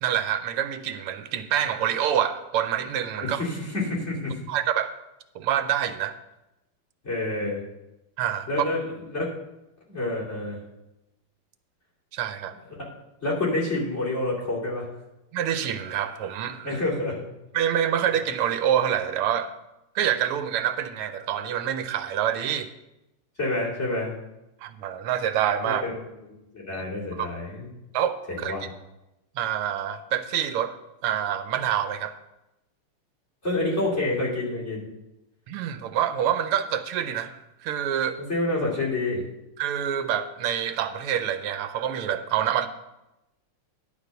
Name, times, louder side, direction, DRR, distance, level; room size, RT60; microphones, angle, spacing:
voice 1, 0.0-3.4 4.5-5.0 5.4-6.2 8.2-8.5 12.1-12.5 15.3-16.8 17.5-19.5 20.0-22.7 24.6-25.8 26.7-26.8 27.1-27.3 27.9-28.6 29.4-30.8 31.0-32.1 35.5-38.2 39.6-42.7, right 10 dB, 90° right, 10 dB, 1.6 m, -26 dB
voice 2, 3.2-4.4 7.0-7.6 8.5-9.3 9.9-10.6 13.2-14.9 16.6-17.2 23.4-24.1 25.6-25.9 26.5-27.7 28.3-28.6 33.4-34.9 38.2-39.2, left 2 dB, 30° left, -6 dB, 3.0 m, -28 dB
10.5 x 5.2 x 6.7 m, 0.93 s
omnidirectional pair, 2.4 m